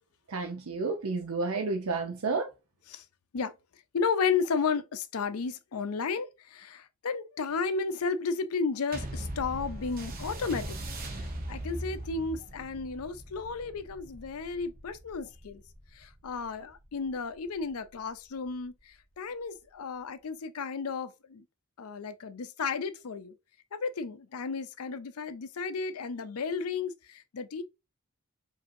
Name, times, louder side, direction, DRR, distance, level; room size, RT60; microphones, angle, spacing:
voice 1, 0.3-2.5, right 3 dB, 75° right, 0.6 m, -31 dB
voice 2, 3.9-10.8 11.5-15.6 16.0-18.7 19.2-21.4 21.8-23.3 23.7-27.6, left 5 dB, 85° left, 0.5 m, -33 dB
Impact Transition, 8.9-17.7 18.5-18.6, right 1 dB, 40° right, 0.8 m, -40 dB
5.1 x 2.7 x 2.6 m
head